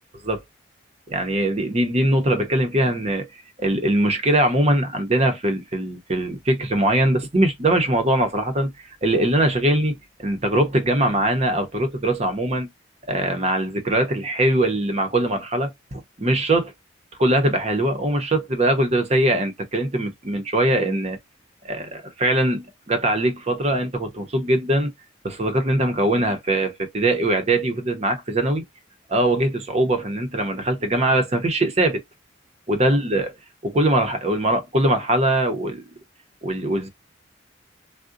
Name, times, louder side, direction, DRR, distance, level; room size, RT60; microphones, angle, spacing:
voice 1, 1.1-3.3 3.6-12.7 13.1-16.7 17.2-21.2 21.6-24.9 25.2-28.6 29.1-32.0 32.7-33.3 33.6-35.8 36.4-36.9, right 1 dB, 35° right, 0.7 m, -21 dB
3.6 x 2.1 x 2.5 m
head